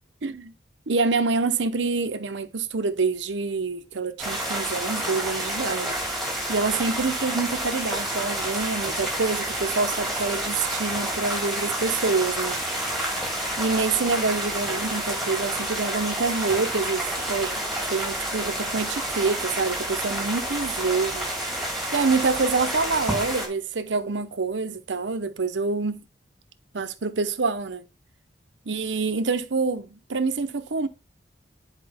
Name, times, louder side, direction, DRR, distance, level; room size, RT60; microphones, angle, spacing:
voice 1, 0.2-0.5 0.9-6.0 6.5-12.6 13.6-17.6 17.9-21.2 21.9-26.0 26.7-27.9 28.7-30.9, right 4 dB, 85° right, 0.8 m, -26 dB
sound 1, 4.2-23.5, right 1 dB, ahead, 2.3 m, -29 dB
10.0 x 4.7 x 3.4 m
head